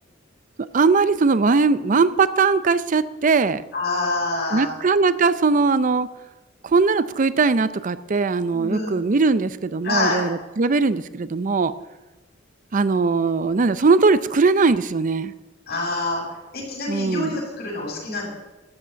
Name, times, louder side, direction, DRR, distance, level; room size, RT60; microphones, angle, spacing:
voice 1, 0.7-3.6 4.5-6.1 6.6-11.7 12.7-15.3 16.9-17.4, right 4 dB, 40° right, 14 dB, 0.5 m, -20 dB
voice 2, 3.7-4.7 8.5-9.0 9.8-10.2 15.7-16.2 16.5-18.3, left 3 dB, 55° left, -3 dB, 7.0 m, -26 dB
13.5 x 8.3 x 9.7 m, 1.1 s
head